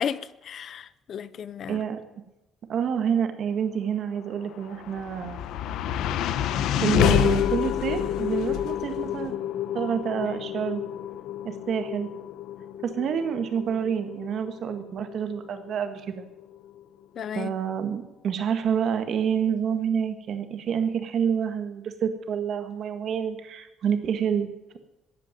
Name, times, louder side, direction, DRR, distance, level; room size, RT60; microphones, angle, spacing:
voice 1, 0.0-1.8 17.2-17.5, left 8 dB, 50° left, 0.7 m, -33 dB
voice 2, 1.7-2.0 2.7-5.4 6.8-9.4 9.7-10.8 11.4-12.1 12.8-16.3 17.4-24.5, right 8 dB, 55° right, 1.7 m, -28 dB
sound 1, 4.4-16.8, left 10 dB, 80° left, 0.9 m, -29 dB
14.0 x 9.1 x 9.3 m
cardioid pair, 145°, 0 cm